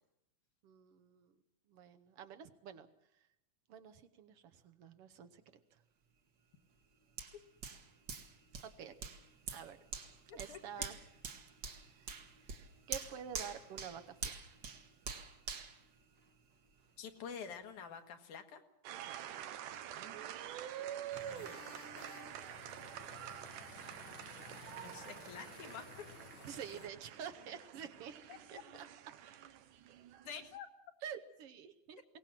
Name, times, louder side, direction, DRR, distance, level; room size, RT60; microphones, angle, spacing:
voice 1, 0.6-1.3 1.7-2.9 3.7-5.4 5.7-5.8 8.6-8.9 9.5-9.8 10.3-11.0 11.6-12.1 12.4-14.6 19.1-19.2 26.4-28.1 28.5-28.9 31.0-32.0, right 8 dB, 65° right, 9 dB, 1.5 m, -49 dB
Hands, 7.2-16.7 17.2-17.3, right 5 dB, 45° right, 1.5 m, -46 dB
voice 2, 10.3-10.6 17.0-18.6 21.3-22.7 24.8-26.1 28.3-28.6 30.3-30.7, left 7 dB, 75° left, 6 dB, 2.8 m, -49 dB
sound 1, 18.8-30.6, right 11 dB, 85° right, 2.5 m, -48 dB
sound 2, 21.1-26.9, left 7 dB, 60° left, 1.3 m, -56 dB
22.0 x 18.5 x 7.5 m, 0.83 s
omnidirectional pair, 3.6 m